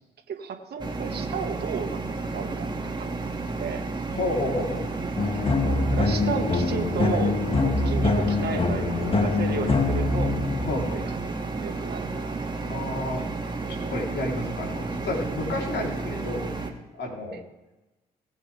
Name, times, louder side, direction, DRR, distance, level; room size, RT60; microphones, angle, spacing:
voice 1, 0.3-2.0 2.3-3.1 3.6-3.8 5.2-5.3 5.6-10.4 10.9-11.2 11.6-12.6 17.3-17.4, right 6 dB, 60° right, 4 dB, 1.7 m, -33 dB
sound 1, 0.8-16.7, right 3 dB, 25° right, 2.1 m, -32 dB
voice 2, 4.1-4.9 10.6-11.0 12.7-13.2 13.9-16.5 17.0-17.4, left 1 dB, 65° left, -1 dB, 3.8 m, -30 dB
sound 2, 5.2-11.1, left 3 dB, 30° left, 1.8 m, -24 dB
20.5 x 7.4 x 3.5 m, 1.1 s
hypercardioid pair, 50°, 19 cm